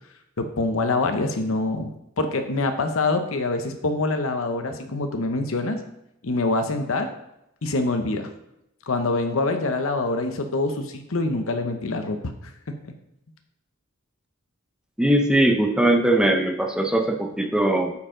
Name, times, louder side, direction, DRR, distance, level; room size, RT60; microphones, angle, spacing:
voice 1, 0.4-1.9 2.2-5.8 6.2-7.1 7.6-8.3 8.9-12.9, left 2 dB, 65° left, 7 dB, 0.8 m, -25 dB
voice 2, 15.0-17.9, right 1 dB, 5° right, 4 dB, 0.5 m, -20 dB
9.5 x 4.5 x 3.8 m, 0.84 s
head